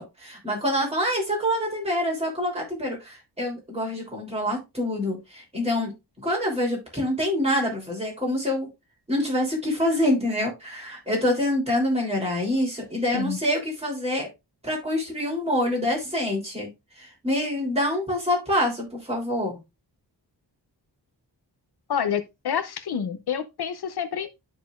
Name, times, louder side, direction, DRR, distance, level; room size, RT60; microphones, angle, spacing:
voice 1, 0.0-5.9 6.2-8.7 9.1-14.3 14.6-16.7 17.0-19.6, left 1 dB, 15° right, 3.2 m, -26 dB
voice 2, 21.9-24.3, left 7 dB, 70° left, 0.7 m, -28 dB
12.0 x 4.1 x 2.4 m
wide cardioid pair, 145°, 41 cm